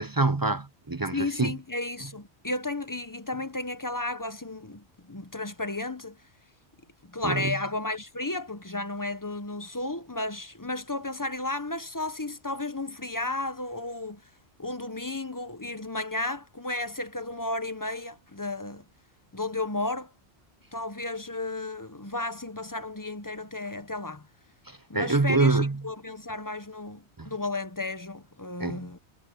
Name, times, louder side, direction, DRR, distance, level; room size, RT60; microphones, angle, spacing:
voice 1, 0.0-1.5 7.2-7.5 24.7-25.8 27.2-27.3 28.6-28.8, right 3 dB, 25° right, 0.5 m, -26 dB
voice 2, 1.1-6.2 7.0-14.2 14.6-18.9 19.3-20.1 20.7-24.3 24.9-29.0, left 2 dB, 20° left, 0.8 m, -33 dB
omnidirectional pair, 1.1 m